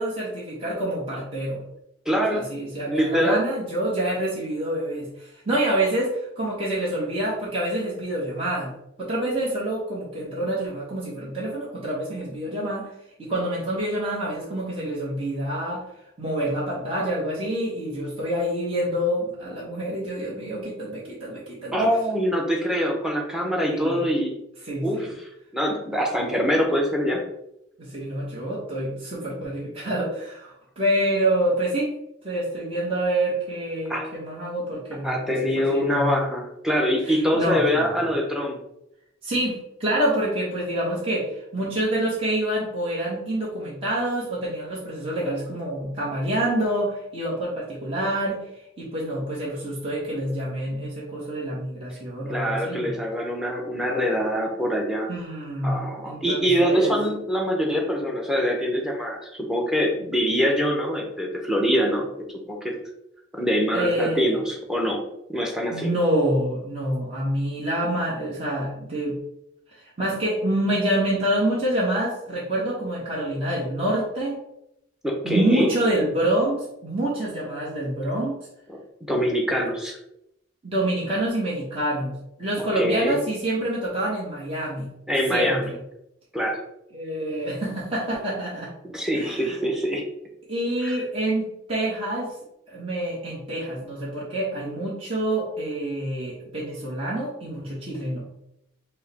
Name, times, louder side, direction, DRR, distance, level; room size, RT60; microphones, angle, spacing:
voice 1, 0.0-1.6 2.3-8.7 9.0-12.9 13.2-15.8 16.2-21.9 23.6-24.0 24.6-25.1 27.8-31.9 32.2-36.1 37.0-37.9 39.2-48.4 48.8-53.0 55.1-56.9 63.7-64.4 65.7-69.1 70.0-74.4 75.2-78.4 80.6-84.9 85.3-85.8 86.9-88.7 89.1-89.6 90.5-92.3 92.7-98.2, right 1 dB, 30° right, -7 dB, 1.1 m, -27 dB
voice 2, 2.1-2.4 2.9-3.4 21.7-24.3 24.8-25.1 25.5-27.2 33.9-34.1 35.0-38.6 52.3-55.1 55.6-62.1 62.5-62.7 63.3-65.0 65.3-65.9 75.0-75.7 79.0-80.0 82.6-83.2 85.1-85.6 86.3-86.6 88.8-90.0 90.8-91.0, equal, 5° right, 0 dB, 0.7 m, -24 dB
4.7 x 2.2 x 4.1 m, 0.81 s
head